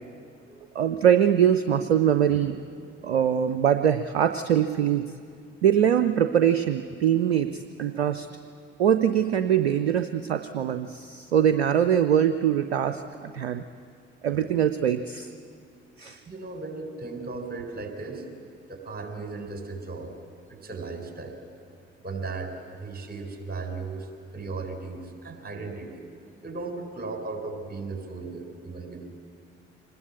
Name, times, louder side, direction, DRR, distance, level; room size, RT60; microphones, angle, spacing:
voice 1, 0.7-2.5 3.0-5.0 5.6-8.3 8.8-13.6 14.2-15.3 16.0-16.2, right 9 dB, 80° right, 10 dB, 0.6 m, -23 dB
voice 2, 16.3-18.4 18.7-20.1 20.5-21.5 22.0-24.1 24.3-26.0 26.4-29.0, right 3 dB, 30° right, 4 dB, 4.2 m, -36 dB
25.0 x 19.5 x 8.3 m, 2.2 s
figure-of-eight pair, 45°, 32 cm